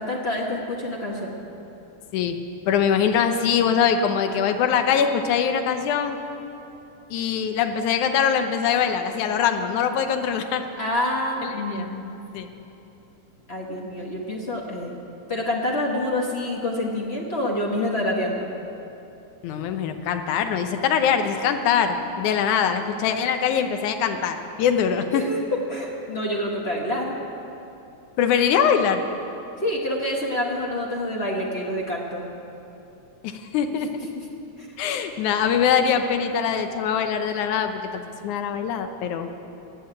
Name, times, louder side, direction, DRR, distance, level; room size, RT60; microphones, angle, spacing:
voice 1, 0.0-1.3 10.8-12.2 13.5-15.0 15.3-18.5 25.1-25.4 25.7-27.2 29.6-32.2 33.9-34.3 34.6-34.7, left 1 dB, 50° left, -2 dB, 0.7 m, -27 dB
voice 2, 2.7-6.2 7.1-10.6 11.4-11.9 12.3-12.5 19.4-25.2 28.2-29.0 33.2-33.9 34.8-39.3, left 7 dB, 85° left, 7 dB, 2.3 m, -23 dB
15.5 x 7.9 x 9.7 m, 2.9 s
omnidirectional pair, 3.4 m